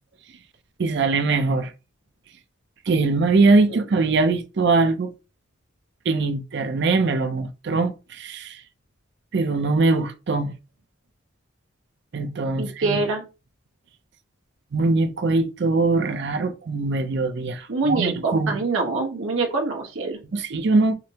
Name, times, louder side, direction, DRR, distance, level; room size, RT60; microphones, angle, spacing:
voice 1, 0.8-1.7 2.9-5.1 6.1-8.6 9.3-10.5 12.1-13.0 14.7-18.6 20.3-20.9, right 3 dB, 55° right, 0.5 m, -22 dB
voice 2, 12.6-13.2 17.7-20.2, right 3 dB, 75° right, 1.0 m, -25 dB
4.9 x 2.0 x 2.8 m
head